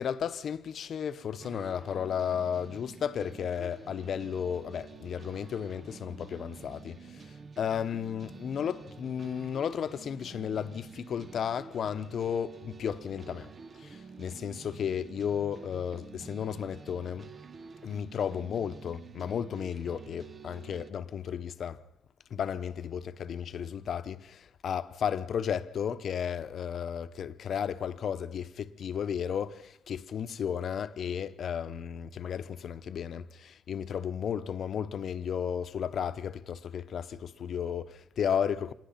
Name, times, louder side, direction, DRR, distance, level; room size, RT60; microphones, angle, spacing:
voice 1, 0.0-13.5 13.8-17.3 17.8-21.8 22.3-38.7, left 8 dB, 60° left, 0.9 m, -34 dB
sound 1, 1.4-20.9, right 5 dB, 40° right, 0.8 m, -49 dB
27.0 x 20.5 x 5.8 m
cardioid pair, 90°, 0 cm